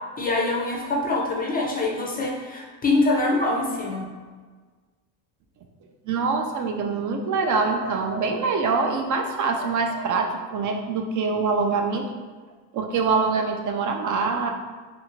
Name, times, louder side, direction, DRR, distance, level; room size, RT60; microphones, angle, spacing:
voice 1, 0.2-4.1, left 2 dB, 20° left, -2 dB, 0.4 m, -24 dB
voice 2, 6.1-12.1 12.7-14.5, right 4 dB, 45° right, 3 dB, 0.4 m, -24 dB
2.6 x 2.4 x 3.0 m, 1.4 s
cardioid pair, 105°, 46 cm